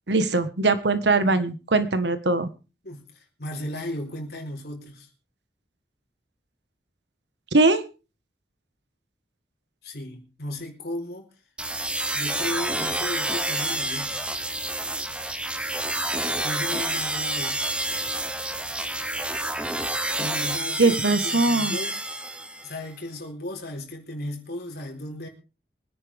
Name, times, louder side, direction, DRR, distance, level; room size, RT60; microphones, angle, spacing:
voice 1, 0.1-2.5 7.5-7.8 20.8-21.8, right 3 dB, 85° right, 10 dB, 1.5 m, -21 dB
voice 2, 2.8-5.1 9.8-11.3 12.1-14.2 16.4-17.6 20.2-22.0 22.6-25.3, left 1 dB, 65° left, 2 dB, 4.1 m, -35 dB
sound 1, 11.6-22.8, right 1 dB, 5° right, 0.8 m, -28 dB
24.0 x 10.0 x 3.6 m, 0.33 s
head